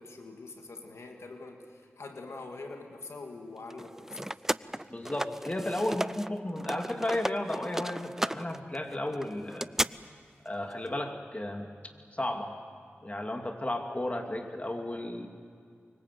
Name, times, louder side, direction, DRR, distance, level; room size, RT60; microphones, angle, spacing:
voice 1, 0.0-4.4, left 3 dB, 85° left, 3 dB, 2.0 m, -44 dB
sound 1, 3.7-6.3 6.6-9.9, right 1 dB, 10° right, 0.5 m, -34 dB
voice 2, 4.9-9.7 10.4-11.7 12.1-12.5 13.0-15.3, left 1 dB, 30° left, 4 dB, 2.7 m, -33 dB
24.5 x 23.5 x 7.8 m, 2.2 s
cardioid pair, 40°, 5 cm